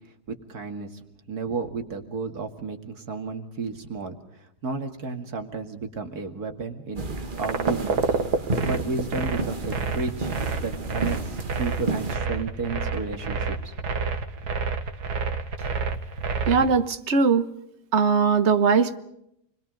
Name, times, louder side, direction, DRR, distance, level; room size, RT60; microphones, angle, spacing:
voice 1, 0.3-7.0 7.4-8.0 8.6-10.3 10.6-13.7, right 4 dB, 70° right, 5 dB, 2.6 m, -32 dB
silent steps in a large hall, 7.0-12.2, right 2 dB, 35° right, 1.5 m, -32 dB
sound 1, 7.4-16.7, right 4 dB, 90° right, 2.1 m, -28 dB
voice 2, 16.5-17.5 17.9-19.0, right 5 dB, 50° right, 10 dB, 1.4 m, -20 dB
28.5 x 21.5 x 5.2 m, 0.77 s
omnidirectional pair, 1.7 m